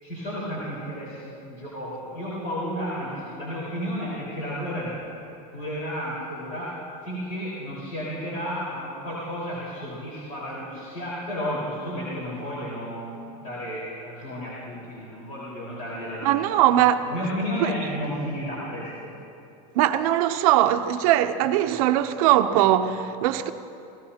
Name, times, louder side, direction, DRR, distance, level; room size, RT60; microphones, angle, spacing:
voice 1, 0.0-5.0 5.5-6.8 7.0-16.6 17.0-19.1, equal, 40° left, 4.6 m, -32 dB
voice 2, 16.2-17.1 17.6-17.7 19.8-23.5, right 12 dB, 65° right, 0.8 m, -20 dB
27.5 x 16.5 x 2.9 m
supercardioid pair, 160°, 20 cm